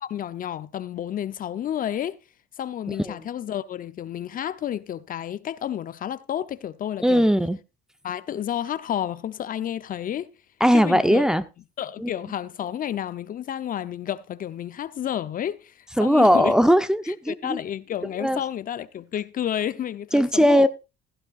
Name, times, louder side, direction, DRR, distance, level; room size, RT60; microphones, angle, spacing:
voice 1, 0.0-2.2 2.6-7.3 8.0-10.3 10.7-11.3 11.8-16.5 17.1-20.7, left 10 dB, 45° left, 0.8 m, -31 dB
voice 2, 7.0-7.6 10.6-11.4 12.0-12.1 16.0-17.6 18.2-18.4 20.1-20.7, equal, 5° right, 0.8 m, -19 dB
16.5 x 11.0 x 2.5 m
supercardioid pair, 100°, 20 cm